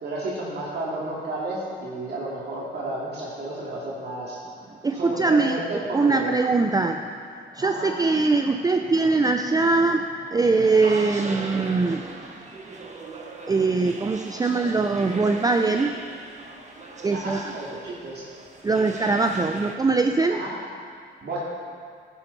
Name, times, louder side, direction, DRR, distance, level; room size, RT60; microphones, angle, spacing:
voice 1, 0.0-4.4 4.9-6.3 7.6-7.9 17.1-18.2 20.3-20.6 21.2-21.4, right 1 dB, 55° right, -7 dB, 2.6 m, -32 dB
voice 2, 4.8-7.1 7.5-12.2 13.5-16.0 17.0-17.6 18.6-20.4, right 3 dB, 20° right, 5 dB, 0.5 m, -22 dB
sound 1, 10.5-19.8, right 3 dB, 35° right, 1.4 m, -40 dB
12.0 x 11.0 x 4.2 m, 2.2 s
cardioid pair, 90°, 20 cm